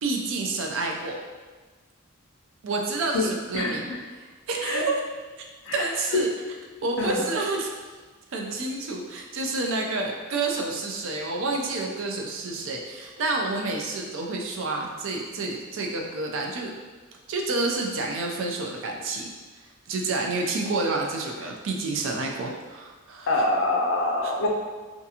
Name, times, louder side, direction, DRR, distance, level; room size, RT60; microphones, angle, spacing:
voice 1, 0.0-1.2 2.6-3.9 4.2-5.0 5.7-6.3 6.8-7.7 8.3-16.7 17.3-19.3 19.9-23.3 24.2-24.3, right 3 dB, 65° right, 1 dB, 0.4 m, -29 dB
voice 2, 3.5-4.0 4.6-4.8 5.6-6.2 7.0-7.2 23.3-24.5, left 2 dB, 65° left, 0 dB, 0.4 m, -25 dB
2.5 x 2.3 x 2.7 m, 1.4 s
head